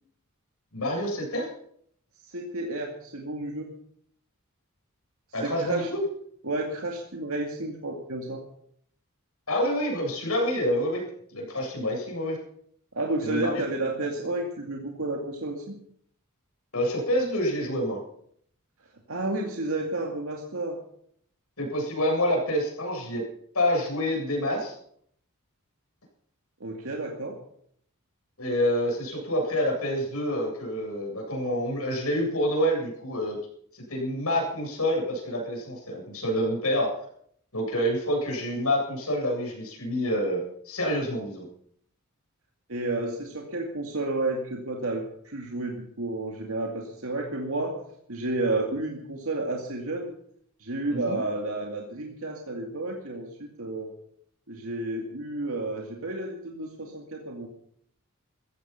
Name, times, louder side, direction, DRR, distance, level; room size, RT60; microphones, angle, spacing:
voice 1, 0.7-1.5 5.3-6.0 9.5-11.0 11.3-12.4 13.2-13.5 16.7-18.0 21.6-23.2 23.5-24.7 28.4-33.4 33.7-37.0 37.5-41.5 50.9-51.2, equal, 80° left, 0 dB, 7.9 m, -27 dB
voice 2, 2.2-3.7 5.4-5.9 6.4-8.4 12.9-15.8 19.1-20.8 26.6-27.4 42.7-47.8 48.1-50.1 50.6-53.9 54.5-57.5, right 2 dB, 70° right, 1 dB, 2.4 m, -31 dB
15.0 x 15.0 x 5.9 m, 0.65 s
head